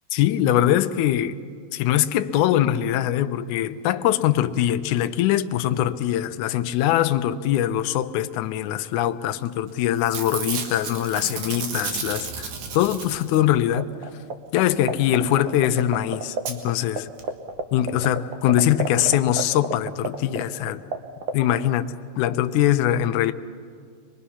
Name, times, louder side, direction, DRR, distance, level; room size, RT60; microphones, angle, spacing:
voice 1, 0.1-1.4 1.7-13.9 14.5-17.1 17.7-20.8 21.3-23.3, left 12 dB, 75° left, 2.0 m, -22 dB
Packing tape duct tape / Tearing, 9.5-9.7 10.0-13.6 15.5-15.6 15.8-15.9 16.5-16.6 17.2-17.3 17.5-17.6, right 5 dB, 65° right, 2.7 m, -32 dB
sound 1, 13.8-14.3 14.6-16.7 17.0-17.1 17.2-21.0 21.2-21.6, right 6 dB, 90° right, 1.0 m, -26 dB
24.5 x 22.0 x 5.7 m
omnidirectional pair, 3.8 m